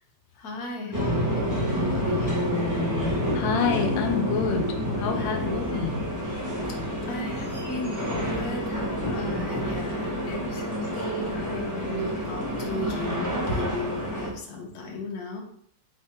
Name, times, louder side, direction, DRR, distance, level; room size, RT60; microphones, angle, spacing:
voice 1, 0.4-2.7 6.8-15.4, left 2 dB, 60° left, 0 dB, 1.4 m, -35 dB
sound 1, 0.9-14.3, equal, 15° right, 0.7 m, -28 dB
voice 2, 3.0-4.7 5.0-6.0 11.8-12.1, left 5 dB, 90° left, 4 dB, 1.4 m, -28 dB
3.7 x 3.3 x 4.3 m, 0.64 s
omnidirectional pair, 2.0 m